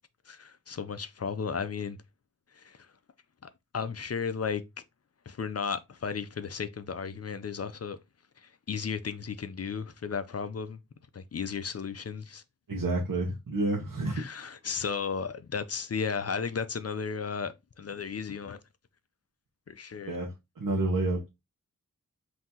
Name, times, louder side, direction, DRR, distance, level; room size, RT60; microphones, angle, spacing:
voice 1, 0.3-2.0 2.5-2.9 3.4-4.6 5.3-8.0 8.4-10.8 11.1-12.4 14.1-18.6 19.7-20.2, left 6 dB, 45° left, 0.5 m, -34 dB
voice 2, 12.7-14.2 20.1-21.3, right 2 dB, 75° right, 0.9 m, -29 dB
5.6 x 2.8 x 2.8 m
wide cardioid pair, 80°, 33 cm